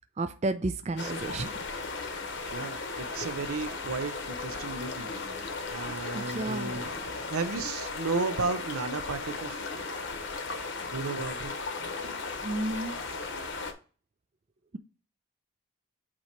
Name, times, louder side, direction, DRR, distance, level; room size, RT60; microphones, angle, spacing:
voice 1, 0.2-1.5 6.1-7.3 12.4-13.0, right 2 dB, 30° right, 0.3 m, -32 dB
sound 1, 1.0-13.7, left 4 dB, 55° left, 0.9 m, -36 dB
voice 2, 2.5-5.1 5.7-9.6 10.9-11.5, right 4 dB, 85° right, 0.7 m, -34 dB
sound 2, 2.9-5.4 6.3-7.3, equal, 10° right, 1.1 m, -56 dB
8.6 x 2.9 x 4.5 m
head